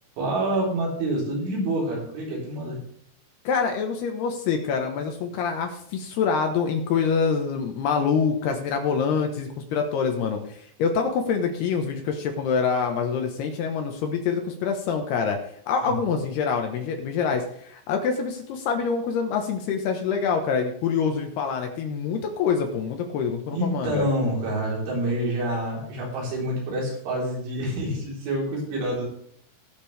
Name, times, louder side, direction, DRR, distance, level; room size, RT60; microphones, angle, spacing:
voice 1, 0.2-2.8 15.8-15.9 23.5-29.1, right 1 dB, 80° right, -3 dB, 6.2 m, -27 dB
voice 2, 3.5-15.4 15.7-24.1, left 6 dB, 70° left, 4 dB, 2.7 m, -26 dB
19.5 x 6.7 x 3.4 m, 0.67 s
omnidirectional pair, 5.5 m